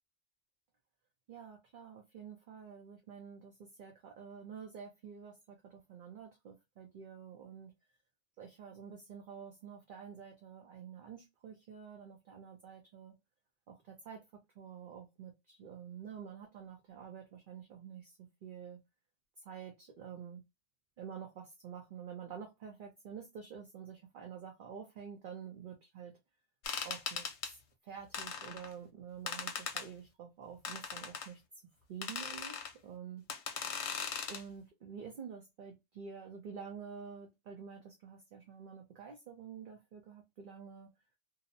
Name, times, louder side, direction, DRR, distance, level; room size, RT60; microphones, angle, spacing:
voice 1, 1.3-3.5 3.8-7.7 8.4-13.1 13.7-14.2 14.6-18.8 19.4-20.4 21.0-26.1 26.8-27.3 27.8-31.4 31.9-32.6 32.8-33.2 33.5-33.6 34.3-40.9, right 7 dB, 55° right, 0.6 m, -48 dB
sound 1, 26.6-27.5 28.1-28.7 29.3-29.9 30.6-31.3 32.0-32.7 33.3-34.4, left 6 dB, 70° left, 0.9 m, -39 dB
2.6 x 2.0 x 2.6 m
omnidirectional pair, 1.3 m